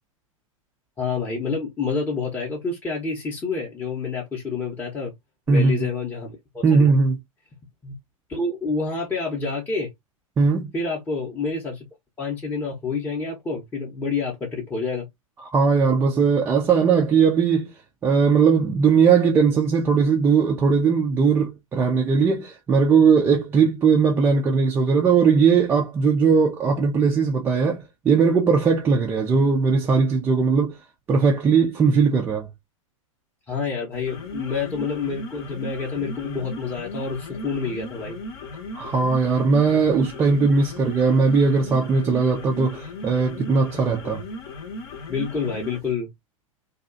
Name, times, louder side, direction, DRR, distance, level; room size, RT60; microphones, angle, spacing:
voice 1, 1.0-5.1 5.5-6.9 7.8-7.9 8.3-9.9 10.7-11.8 12.2-15.1 33.5-38.2 45.1-46.1, left 4 dB, 10° left, 0.7 m, -28 dB
voice 2, 5.5-5.9 6.6-7.2 10.4-10.7 15.5-17.7 18.0-30.7 31.1-32.5 38.7-44.2, right 5 dB, 15° right, 0.3 m, -19 dB
sound 1, 33.9-45.9, left 2 dB, 45° left, 0.7 m, -37 dB
2.7 x 2.3 x 2.4 m
figure-of-eight pair, 100°, 17 cm